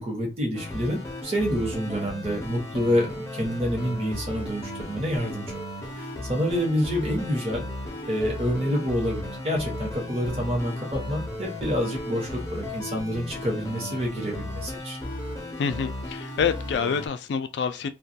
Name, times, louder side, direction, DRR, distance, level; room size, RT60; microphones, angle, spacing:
voice 1, 0.0-5.6 6.0-7.7 8.1-15.0, equal, 35° right, 0.9 m, -28 dB
sound 1, 0.5-17.1, left 1 dB, 15° left, 0.6 m, -35 dB
voice 2, 15.6-17.9, left 6 dB, 75° left, 0.3 m, -27 dB
2.2 x 2.2 x 2.6 m
head